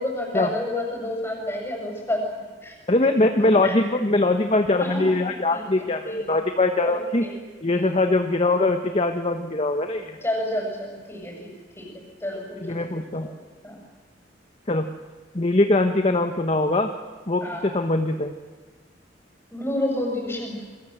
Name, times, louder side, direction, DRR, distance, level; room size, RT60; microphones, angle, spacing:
voice 1, 0.0-2.3 2.6-2.8 3.6-3.8 4.8-6.4 6.8-7.3 7.8-7.9 10.2-11.9 12.2-12.9 13.2-13.4 13.6-13.8 17.4-17.7 19.5-20.6, left 1 dB, 15° left, 1 dB, 6.8 m, -30 dB
voice 2, 2.9-7.2 7.6-10.2 12.6-13.3 14.7-14.9 15.3-16.9 17.3-18.3, left 2 dB, 35° left, 6 dB, 1.2 m, -22 dB
28.0 x 22.0 x 8.0 m, 1.4 s
head